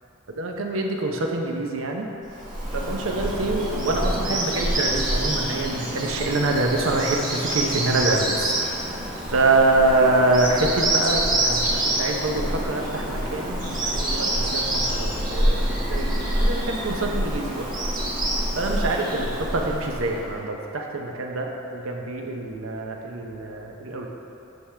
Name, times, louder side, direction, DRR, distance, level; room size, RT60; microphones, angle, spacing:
voice 1, 0.3-2.1 2.7-9.0 9.3-17.6 18.6-24.1, right 2 dB, 85° right, 1 dB, 0.7 m, -25 dB
Bird vocalization bird call bird song, 2.3-20.3, right 1 dB, 40° right, 1.4 m, -26 dB
10.0 x 3.7 x 3.3 m, 3.0 s
head